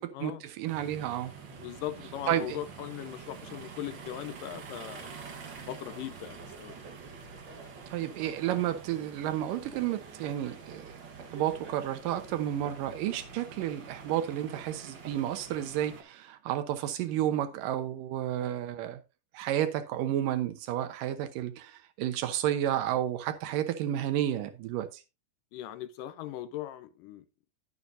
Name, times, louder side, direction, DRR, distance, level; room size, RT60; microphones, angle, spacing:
voice 1, 0.2-1.3 2.3-2.6 7.9-11.0 11.3-19.0 19.3-24.9, right 11 dB, 90° right, 2.6 m, -31 dB
sound 1, 0.7-16.0, right 5 dB, 55° right, 1.3 m, -46 dB
voice 2, 1.5-5.1 5.7-6.8 25.5-27.3, left 12 dB, 80° left, 2.4 m, -39 dB
11.0 x 9.3 x 2.6 m
omnidirectional pair, 3.8 m